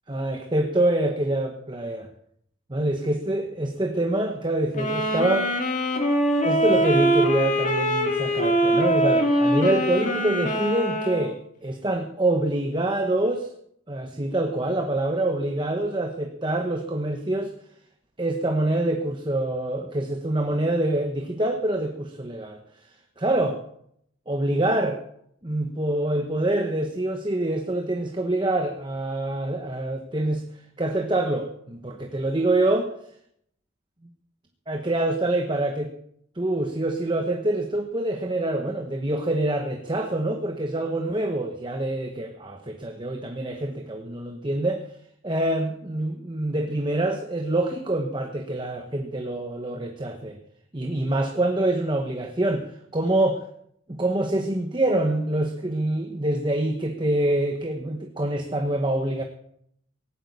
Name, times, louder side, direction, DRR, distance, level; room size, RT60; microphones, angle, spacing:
voice 1, 0.1-2.1 2.7-5.5 6.4-13.5 13.9-17.5 18.2-22.6 23.2-23.6 24.3-25.0 25.4-30.4 30.8-32.9 34.7-35.9 36.3-44.9 45.2-50.4 50.7-53.4 53.9-59.2, right 1 dB, 20° right, 4 dB, 1.0 m, -25 dB
sound 1, 4.7-11.3, equal, 35° left, 2.2 m, -23 dB
17.5 x 8.4 x 8.3 m, 0.72 s
head